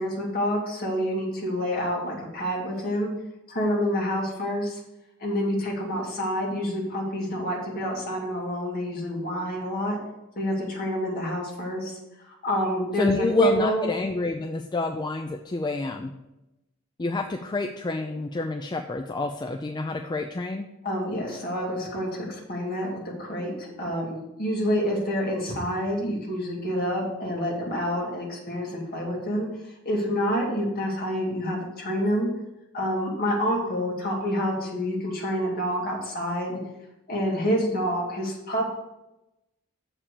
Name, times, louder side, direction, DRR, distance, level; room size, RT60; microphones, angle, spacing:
voice 1, 0.0-3.1 3.5-4.8 5.2-10.0 10.4-12.0 12.3-13.8 20.8-29.5 29.8-32.3 32.7-36.6 37.1-38.7, equal, 45° left, -2 dB, 2.3 m, -28 dB
voice 2, 13.0-16.1 17.0-20.7, left 2 dB, 20° left, 5 dB, 0.4 m, -28 dB
7.3 x 5.0 x 6.8 m, 0.94 s
head